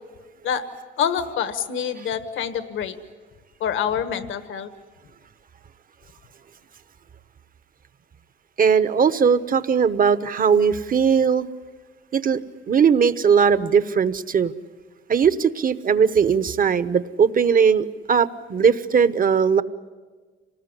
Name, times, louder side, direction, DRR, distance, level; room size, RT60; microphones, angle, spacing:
voice 1, 1.0-3.0 3.6-4.7, left 8 dB, 80° left, 10 dB, 1.5 m, -26 dB
voice 2, 8.6-11.4 12.1-12.4 12.7-14.5 15.1-19.6, right 6 dB, 45° right, 14 dB, 1.0 m, -19 dB
26.5 x 19.5 x 9.9 m, 1.4 s
cardioid pair, 90°, 20 cm